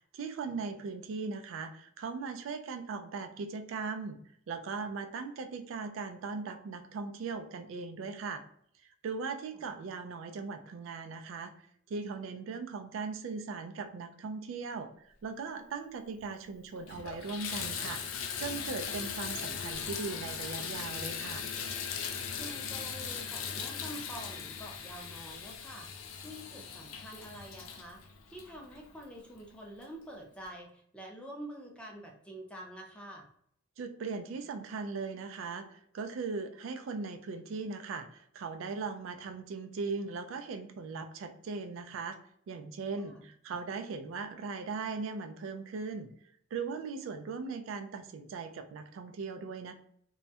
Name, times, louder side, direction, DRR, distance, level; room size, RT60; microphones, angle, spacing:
voice 1, 0.0-4.2 4.5-8.4 9.0-18.0 18.4-21.4 33.8-42.2 42.5-46.1 46.5-49.7, right 4 dB, 75° right, 7 dB, 0.3 m, -39 dB
Water tap faucet / Bathtub (filling or washing), 16.2-16.3 16.8-29.2 29.8-29.9 30.4-30.5, left 7 dB, 90° left, 0.4 m, -39 dB
voice 2, 22.4-33.3 43.0-43.3, right 1 dB, 5° left, 0 dB, 0.4 m, -47 dB
2.3 x 2.1 x 2.6 m, 0.66 s
head